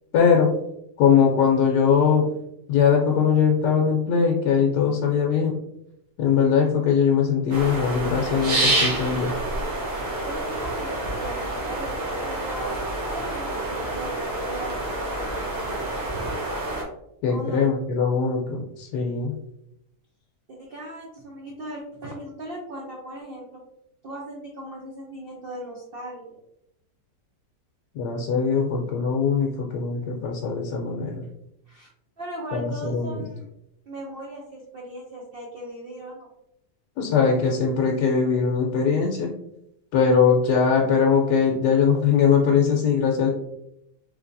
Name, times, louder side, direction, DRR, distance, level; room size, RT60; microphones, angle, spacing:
voice 1, 0.1-0.5 1.0-2.3 2.7-5.6 6.2-9.3 17.2-19.4 27.9-31.2 32.5-33.2 37.0-39.3 39.9-43.3, left 6 dB, 75° left, -1 dB, 1.1 m, -21 dB
bird screech, 7.5-16.8, right 2 dB, 45° right, 1.2 m, -28 dB
voice 2, 10.2-12.7 13.1-15.8 17.3-17.7 20.5-23.6 24.0-26.4 31.7-31.9 32.2-33.4 33.9-36.3, right 1 dB, 70° right, -2 dB, 0.5 m, -38 dB
3.3 x 3.2 x 2.5 m, 0.81 s
omnidirectional pair, 1.8 m